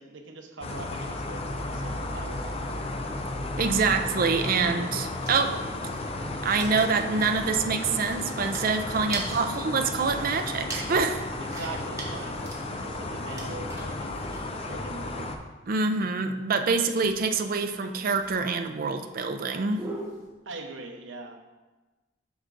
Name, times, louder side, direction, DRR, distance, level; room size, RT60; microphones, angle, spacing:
voice 1, 0.0-2.8 9.4-9.5 11.4-15.3 20.5-21.4, right 3 dB, 85° right, 4 dB, 0.8 m, -42 dB
sound 1, 0.6-15.4, left 2 dB, 30° left, 0.5 m, -34 dB
sound 2, 3.2-20.3, right 2 dB, 20° right, 1.2 m, -43 dB
voice 2, 3.6-5.6 6.4-11.2 15.7-19.9, right 4 dB, 50° right, 7 dB, 0.5 m, -26 dB
7.9 x 6.5 x 2.5 m, 1.2 s
head